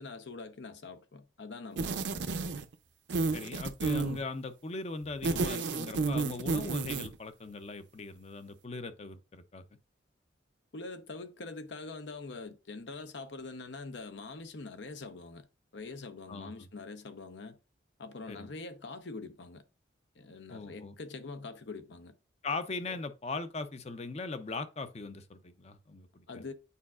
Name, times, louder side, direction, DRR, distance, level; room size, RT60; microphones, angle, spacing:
voice 1, 0.0-2.6 10.7-15.5 15.7-17.6 18.0-19.6 20.2-22.1 22.9-23.0 26.3-26.5, left 3 dB, 75° left, 0.8 m, -44 dB
sound 1, 1.8-2.7 3.1-4.2 5.1-7.2, right 4 dB, 70° right, 0.6 m, -31 dB
voice 2, 3.3-9.6 16.3-16.7 18.3-18.5 20.5-20.9 22.4-26.5, left 3 dB, 35° left, 0.6 m, -39 dB
8.4 x 4.7 x 2.4 m
head